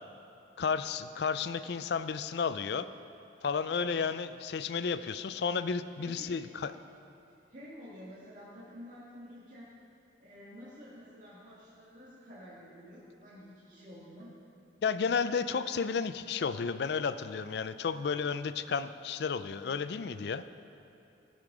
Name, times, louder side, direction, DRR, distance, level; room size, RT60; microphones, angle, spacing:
voice 1, 0.6-2.9 3.4-6.7 14.8-20.4, left 5 dB, 65° left, 13 dB, 0.4 m, -32 dB
voice 2, 6.0-6.5 7.5-9.8 10.2-14.4, equal, 45° right, -9 dB, 2.0 m, -50 dB
15.5 x 6.6 x 4.9 m, 2.9 s
head